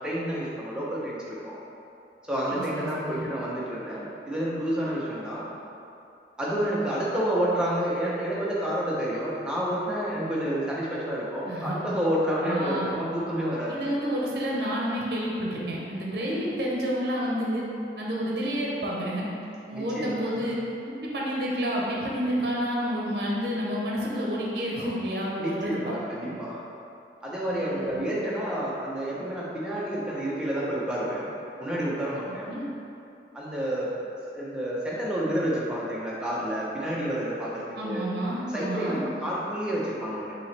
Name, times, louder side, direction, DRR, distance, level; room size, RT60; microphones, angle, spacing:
voice 1, 0.0-1.6 2.3-5.4 6.4-13.9 19.7-20.5 25.4-26.6 27.2-31.3 31.6-32.5 33.3-33.9 34.3-38.0 38.5-40.3, right 1 dB, 5° right, -7 dB, 0.7 m, -29 dB
voice 2, 2.5-3.3 11.5-11.8 12.4-12.9 13.7-17.6 18.0-19.2 19.7-20.6 20.8-25.9 27.5-28.0 32.3-32.6 37.7-39.0, equal, 60° right, -4 dB, 0.7 m, -29 dB
5.4 x 2.9 x 3.3 m, 2.6 s
head